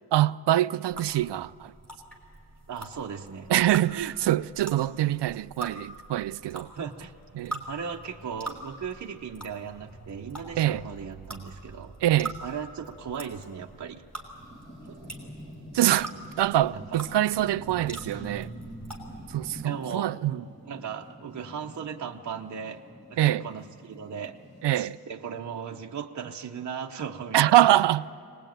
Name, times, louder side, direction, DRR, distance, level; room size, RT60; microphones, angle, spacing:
voice 1, 0.1-1.7 3.5-6.7 7.3-7.6 10.6-10.8 12.0-12.4 15.7-18.5 19.3-20.4 23.2-23.4 24.6-25.0 27.3-28.0, right 13 dB, 85° right, 0.5 m, -24 dB
sound 1, 0.9-19.4, right 2 dB, 5° left, 3.1 m, -43 dB
voice 2, 2.7-3.5 6.7-7.1 7.7-11.9 12.4-14.0 14.9-15.0 16.7-17.0 19.6-20.1 20.7-22.8 23.1-24.4 24.7-27.8, right 7 dB, 45° right, 0.8 m, -37 dB
sound 2, 14.3-24.8, equal, 15° right, 2.9 m, -47 dB
24.0 x 19.0 x 9.0 m
wide cardioid pair, 165°, 41 cm